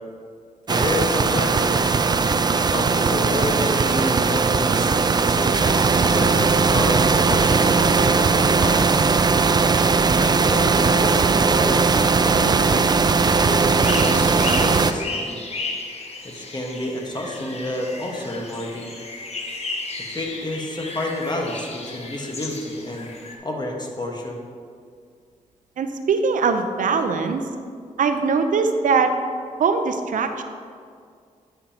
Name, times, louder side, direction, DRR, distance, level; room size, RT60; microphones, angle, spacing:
voice 1, 0.7-1.8 2.6-9.1 10.0-12.9 13.4-15.4 16.2-18.9 20.0-23.1 23.4-24.4, left 1 dB, 30° left, 0 dB, 1.3 m, -29 dB
sound 1, 0.7-14.9, right 4 dB, 30° right, 0.3 m, -19 dB
sound 2, 12.7-23.4, left 3 dB, 50° left, 1.0 m, -34 dB
voice 2, 25.8-27.4 28.0-29.1 29.6-30.4, right 5 dB, 70° right, 8 dB, 0.6 m, -21 dB
9.7 x 5.5 x 2.9 m, 2.2 s
cardioid pair, 55°, 14 cm